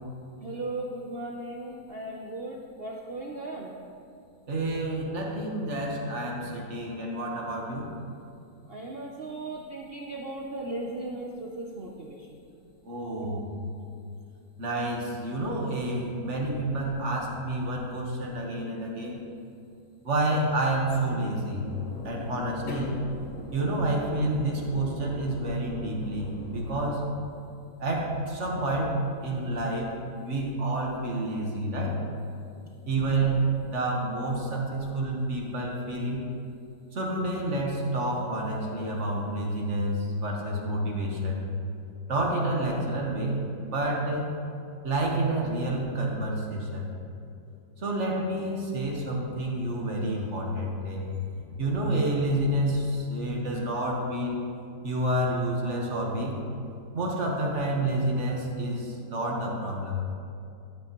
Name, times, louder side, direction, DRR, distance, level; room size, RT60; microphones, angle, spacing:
voice 1, 0.4-3.7 8.7-12.3 33.2-33.4, right 2 dB, 60° right, -2 dB, 0.6 m, -37 dB
voice 2, 4.5-7.9 12.8-13.5 13.8-13.9 14.6-19.2 20.0-21.7 22.0-23.0 23.5-27.0 27.8-29.9 30.2-32.0 32.9-33.4 33.7-36.2 36.9-41.4 42.1-44.3 44.8-46.9 47.8-51.0 51.6-54.4 54.8-56.4 56.9-60.0, right 1 dB, 45° right, -1 dB, 1.5 m, -29 dB
sound 1, 21.6-26.8, left 2 dB, 70° left, 1.4 m, -40 dB
13.5 x 7.8 x 3.0 m, 2.5 s
omnidirectional pair, 1.9 m